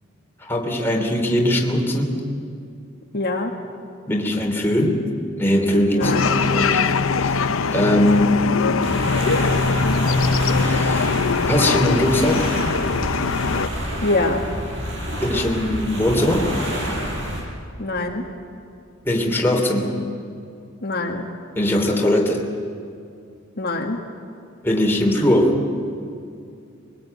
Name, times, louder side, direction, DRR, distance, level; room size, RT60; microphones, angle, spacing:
voice 1, 0.4-2.1 4.1-5.0 5.4-6.1 6.5-6.8 7.2-7.4 7.7-8.5 10.6-11.1 11.5-12.5 15.2-16.5 19.0-20.0 21.5-22.4 24.6-25.6, left 1 dB, 10° left, 0 dB, 2.9 m, -20 dB
voice 2, 3.1-3.5 5.9-6.5 14.0-14.4 17.8-18.2 20.8-21.3 23.6-24.0, left 2 dB, 50° left, 1 dB, 1.7 m, -24 dB
sound 1, 6.0-13.7, left 4 dB, 80° left, 0.8 m, -21 dB
sound 2, 8.8-17.4, equal, 65° right, 6.0 m, -28 dB
23.5 x 20.0 x 9.3 m, 2.5 s
head